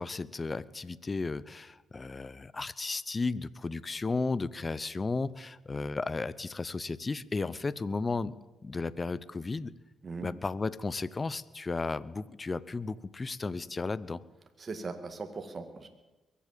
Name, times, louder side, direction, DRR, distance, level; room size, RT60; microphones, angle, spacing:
voice 1, 0.0-8.4 8.6-9.7 10.2-14.2, left 3 dB, 35° left, 19 dB, 0.7 m, -34 dB
voice 2, 14.6-15.9, right 4 dB, 45° right, 6 dB, 1.9 m, -39 dB
22.0 x 8.6 x 7.5 m, 1.1 s
supercardioid pair, 50°, 0 cm